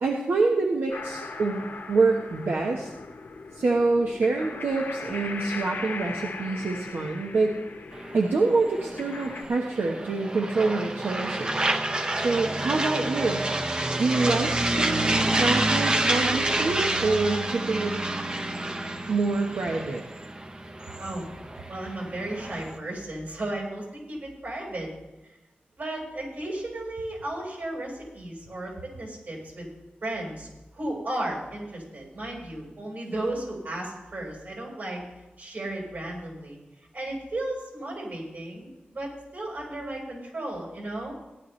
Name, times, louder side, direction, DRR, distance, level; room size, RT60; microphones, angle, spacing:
voice 1, 0.0-2.9 3.5-7.6 8.1-11.8 12.1-13.4 14.0-18.0 19.1-20.0, right 3 dB, 80° right, 1 dB, 1.1 m, -26 dB
sound 1, 0.9-9.4, left 4 dB, 75° left, 1.3 m, -39 dB
sound 2, 7.9-22.8, right 2 dB, 25° right, 0.8 m, -28 dB
voice 2, 21.7-24.9 25.8-29.7 30.0-35.0 35.4-36.6 36.9-41.1, right 1 dB, 60° right, -2 dB, 4.7 m, -34 dB
16.5 x 11.0 x 3.2 m, 1.0 s
wide cardioid pair, 135°, 4 cm